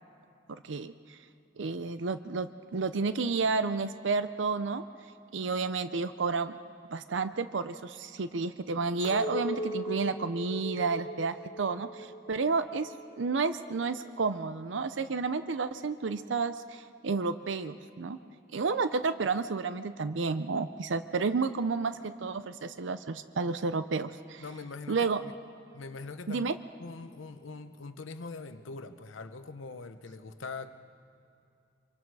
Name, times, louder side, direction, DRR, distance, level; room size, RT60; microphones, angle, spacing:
voice 1, 0.6-1.2 1.6-4.8 5.3-6.6 6.9-18.2 18.5-24.4 24.9-25.2 26.3-26.5, right 4 dB, 75° right, 11 dB, 0.6 m, -31 dB
Chink clink, 9.0-13.3 13.8-14.2, equal, 20° left, 4.1 m, -39 dB
voice 2, 24.4-25.3 25.7-26.5 26.8-30.7, left 3 dB, 90° left, 9 dB, 0.8 m, -42 dB
26.0 x 23.5 x 4.8 m, 2.6 s
head